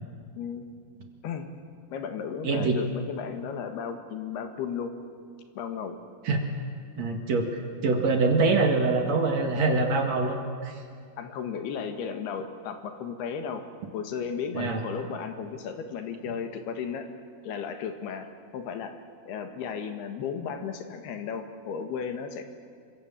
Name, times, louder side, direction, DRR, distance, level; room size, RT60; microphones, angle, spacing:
voice 1, 0.3-0.7 1.2-1.5 1.9-4.9 5.6-6.0 11.2-13.6 13.9-17.1 17.4-18.3 18.5-18.9 19.3-22.4, left 6 dB, 90° left, 6 dB, 3.7 m, -34 dB
voice 2, 2.4-2.8 6.2-6.5 7.0-10.4 10.6-10.7 14.5-14.8, right 3 dB, 50° right, 3 dB, 3.0 m, -24 dB
27.5 x 25.5 x 7.4 m, 2.1 s
omnidirectional pair, 4.5 m